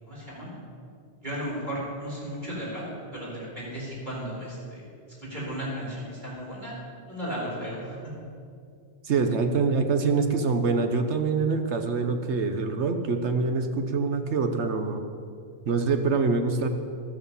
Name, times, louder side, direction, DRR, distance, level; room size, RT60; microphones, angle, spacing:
voice 1, 0.1-0.5 1.2-2.8 3.1-4.8 5.3-6.7 7.1-8.0, equal, 40° right, -6 dB, 4.8 m, -34 dB
voice 2, 9.0-15.0 15.7-16.7, right 4 dB, 75° right, 6 dB, 1.2 m, -25 dB
13.5 x 13.0 x 5.6 m, 2.3 s
omnidirectional pair, 1.2 m